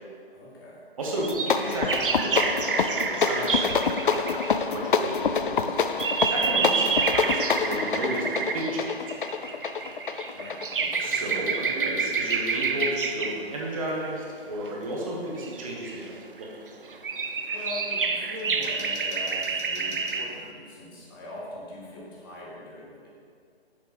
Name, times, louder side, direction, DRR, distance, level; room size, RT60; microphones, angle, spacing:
voice 1, 0.3-0.8 10.3-11.5 17.5-23.1, left 1 dB, 20° left, -5 dB, 1.1 m, -41 dB
voice 2, 1.0-4.3 4.5-5.8 6.3-9.5 11.0-16.5, right 1 dB, 35° right, -2 dB, 1.2 m, -33 dB
sound 1, 1.0-4.6 5.3-13.5 14.7-14.8 15.4-16.4 16.7-20.4, right 5 dB, 55° right, 0.6 m, -29 dB
sound 2, 1.2-11.5, left 5 dB, 55° left, 0.4 m, -27 dB
6.9 x 5.6 x 5.3 m, 2.2 s
figure-of-eight pair, 140°, 32 cm